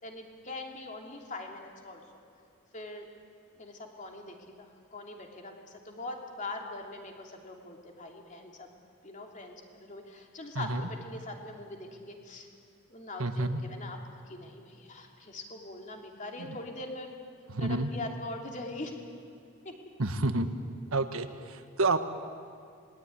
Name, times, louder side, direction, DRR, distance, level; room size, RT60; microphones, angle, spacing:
voice 1, 0.0-2.0 2.7-3.1 3.5-8.7 9.0-12.5 12.9-14.0 14.2-17.1 17.6-18.9 19.6-19.7, left 2 dB, 35° left, 2 dB, 3.0 m, -42 dB
voice 2, 13.2-13.6 16.5-16.6 17.5-17.9 20.0-20.5 20.9-22.0, right 2 dB, 70° right, 8 dB, 1.4 m, -29 dB
27.0 x 20.5 x 9.7 m, 2.3 s
head